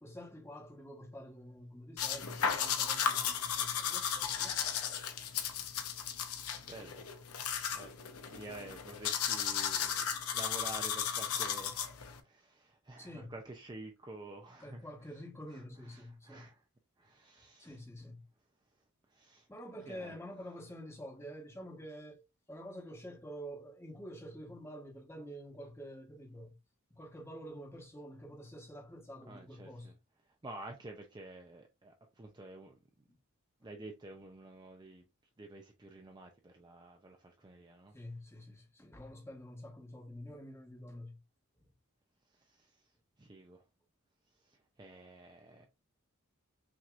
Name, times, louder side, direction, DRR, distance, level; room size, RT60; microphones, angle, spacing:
voice 1, 0.0-4.6 13.0-13.4 14.6-16.5 17.6-18.2 19.5-22.2 22.5-26.5 26.9-29.9 33.1-33.2 37.9-41.2 41.6-41.7, equal, 10° left, 1.1 m, -48 dB
sound 1, 2.0-12.2, left 8 dB, 90° left, 0.7 m, -35 dB
voice 2, 6.6-7.1 7.7-11.9 12.2-14.9 15.5-16.6 17.0-17.8 19.1-19.5 19.9-20.1 29.3-29.9 30.4-32.8 33.6-35.0 35.4-38.0 42.3-42.8 43.2-43.6 44.4-45.7, right 2 dB, 20° right, 0.5 m, -50 dB
5.9 x 2.9 x 2.4 m
head